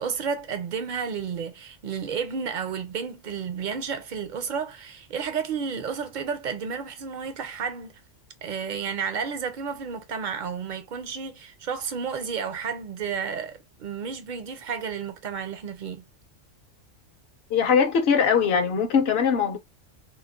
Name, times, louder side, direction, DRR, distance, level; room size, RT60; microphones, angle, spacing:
voice 1, 0.0-7.9 8.4-16.0, right 6 dB, 60° right, 0.5 m, -32 dB
voice 2, 17.5-19.6, left 6 dB, 60° left, 0.7 m, -21 dB
3.1 x 2.1 x 2.3 m
omnidirectional pair, 1.3 m